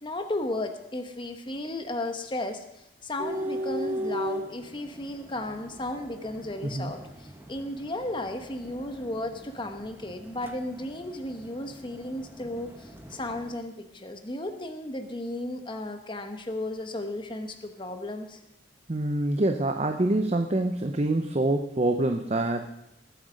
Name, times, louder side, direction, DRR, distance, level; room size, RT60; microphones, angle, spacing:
voice 1, 0.0-18.4, left 1 dB, 25° left, 6 dB, 1.1 m, -34 dB
sound 1, 3.2-13.5, equal, 10° right, 1.2 m, -39 dB
voice 2, 6.6-6.9 18.9-22.7, right 2 dB, 35° right, 6 dB, 0.6 m, -26 dB
19.5 x 8.0 x 5.1 m, 0.89 s
head